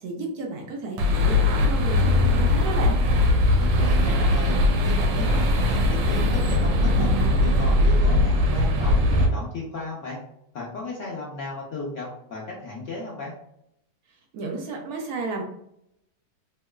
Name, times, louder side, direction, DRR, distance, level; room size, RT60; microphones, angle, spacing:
voice 1, 0.0-3.0 14.3-15.4, right 3 dB, 70° right, 0 dB, 1.0 m, -32 dB
sound 1, 1.0-9.3, left 1 dB, 90° right, 1.3 m, -20 dB
voice 2, 3.6-7.1 7.4-10.2 10.5-13.3, left 3 dB, 65° left, -4 dB, 0.8 m, -35 dB
3.0 x 2.8 x 2.2 m, 0.76 s
omnidirectional pair, 1.9 m